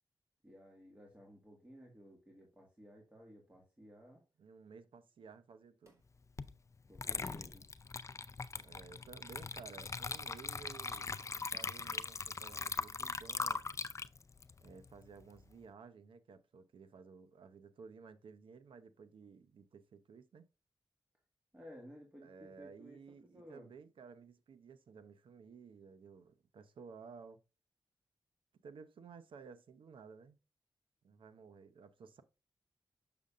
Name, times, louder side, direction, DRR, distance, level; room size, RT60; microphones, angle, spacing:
voice 1, 0.4-4.2 6.9-7.7 21.5-23.7, equal, 15° right, 1.7 m, -56 dB
voice 2, 4.4-6.0 8.6-13.8 14.6-20.5 22.2-27.4 28.6-30.4 31.0-32.2, right 5 dB, 90° right, 0.7 m, -55 dB
sound 1, 5.8-6.2 7.2-7.6 8.5-8.8 9.9-10.1 11.2-11.5, right 1 dB, 35° right, 2.3 m, -67 dB
Water / Liquid, 6.4-6.5 6.9-15.5, left 4 dB, 35° left, 0.4 m, -41 dB
6.8 x 6.5 x 2.4 m
wide cardioid pair, 90°, 9 cm